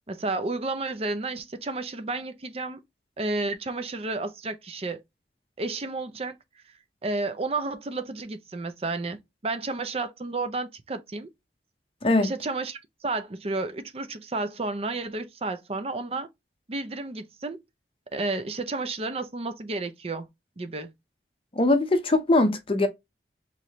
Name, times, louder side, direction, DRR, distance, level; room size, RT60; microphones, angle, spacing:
voice 1, 0.1-2.8 3.2-5.0 5.6-6.4 7.0-11.3 12.2-16.3 16.7-17.6 18.1-20.3 20.6-20.9, right 3 dB, 35° right, 0.5 m, -31 dB
voice 2, 12.0-12.3 21.6-22.9, left 2 dB, 30° left, 0.6 m, -21 dB
4.2 x 3.2 x 2.8 m
head